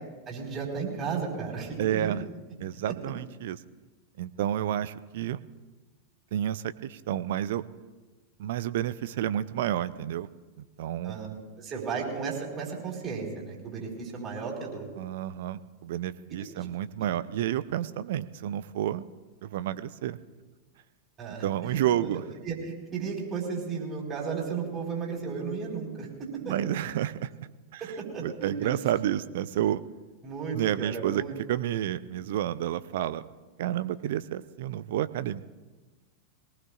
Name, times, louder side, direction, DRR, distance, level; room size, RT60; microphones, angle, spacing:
voice 1, 0.3-2.1 11.0-11.3 11.6-14.9 16.5-16.7 17.0-17.1 21.2-22.1 22.4-26.6 27.8-28.8 30.2-31.3, right 5 dB, 30° right, -1 dB, 4.6 m, -34 dB
voice 2, 1.8-2.2 2.6-3.6 4.2-5.4 6.3-7.6 8.4-10.3 10.6-11.1 15.0-19.1 19.4-20.2 21.4-22.2 26.5-27.3 27.7-27.8 28.2-29.8 30.5-31.2 31.5-33.2 33.6-35.4, right 11 dB, 55° right, 14 dB, 0.5 m, -30 dB
22.5 x 18.5 x 2.5 m, 1.2 s
figure-of-eight pair, 90°, 0 cm